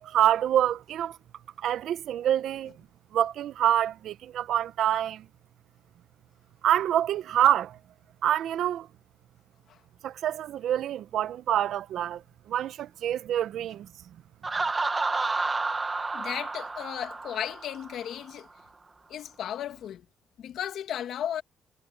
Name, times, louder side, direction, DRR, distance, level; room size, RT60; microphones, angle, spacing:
voice 1, 0.0-1.2 1.6-2.7 3.1-5.3 6.6-7.8 8.2-8.9 10.0-12.2 12.5-13.9, right 11 dB, 65° right, 0.7 m, -26 dB
Laughter, 14.4-18.1, right 3 dB, 20° right, 1.0 m, -30 dB
voice 2, 16.1-18.5 19.1-20.1 20.4-21.4, left 10 dB, 65° left, 1.9 m, -35 dB
cardioid pair, 140°, 0 cm